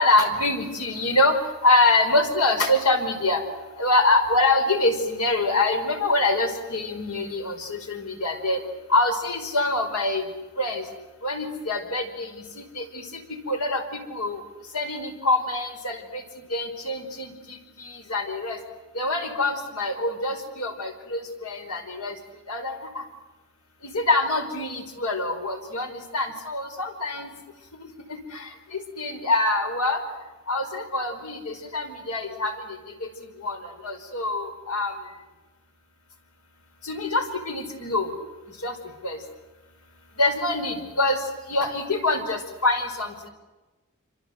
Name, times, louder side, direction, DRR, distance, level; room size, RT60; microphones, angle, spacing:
voice 1, 0.0-1.4 1.6-3.4 3.8-8.6 8.9-10.2 10.6-10.8 11.2-14.4 14.7-16.2 16.5-18.6 18.9-22.2 22.5-23.0 23.8-27.3 28.1-30.0 30.5-32.5 33.0-33.1 33.4-34.9 36.8-38.1 38.6-38.7 39.0-39.2 40.2-41.2 41.5-43.3, left 2 dB, 90° left, 6 dB, 5.1 m, -25 dB
28.0 x 26.0 x 8.0 m, 1.2 s
head